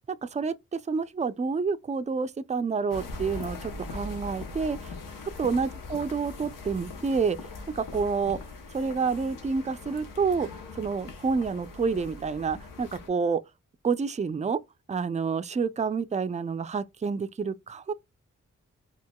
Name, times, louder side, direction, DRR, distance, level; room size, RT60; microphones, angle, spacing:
voice 1, 0.1-4.9 5.4-7.4 7.7-8.4 8.7-10.5 10.7-13.4 13.8-14.6 14.9-17.9, right 5 dB, 20° right, 0.4 m, -28 dB
sound 1, 2.9-13.1, left 3 dB, 80° left, 0.9 m, -41 dB
4.7 x 2.4 x 2.2 m
cardioid pair, 45°, 32 cm